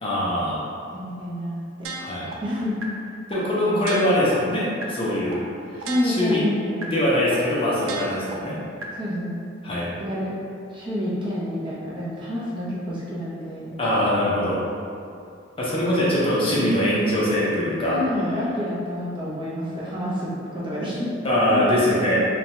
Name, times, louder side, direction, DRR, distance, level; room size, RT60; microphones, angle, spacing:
voice 1, 0.0-0.6 2.0-2.3 3.3-5.4 5.7-6.4 6.9-8.6 9.6-9.9 13.8-14.6 15.6-18.0 21.2-22.2, left 1 dB, 30° left, -7 dB, 0.5 m, -22 dB
voice 2, 0.9-1.9 2.4-2.8 3.6-4.0 5.8-7.0 8.9-9.4 10.0-10.4 10.7-13.7 16.0-16.1 17.9-21.1 21.5-21.8, left 1 dB, 25° right, -8 dB, 0.6 m, -28 dB
sound 1, 1.8-2.3 2.8-2.9 3.3-3.4 3.8-4.3 4.8-4.9 5.3-5.4 5.8-6.3 6.8-6.9 7.3-7.4 7.8-8.3 8.8-8.9, right 4 dB, 85° right, 0.4 m, -33 dB
2.7 x 2.2 x 3.0 m, 2.4 s
head